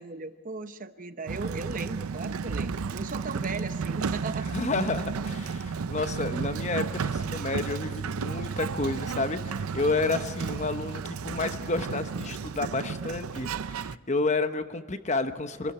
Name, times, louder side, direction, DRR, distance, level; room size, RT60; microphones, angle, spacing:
voice 1, 0.0-4.5, right 3 dB, 40° right, 10 dB, 0.8 m, -37 dB
Sliding door, 1.3-14.0, right 5 dB, 90° right, 0.5 m, -33 dB
voice 2, 4.5-15.7, left 3 dB, 35° left, 9 dB, 1.0 m, -30 dB
25.5 x 13.0 x 9.8 m, 1.5 s
head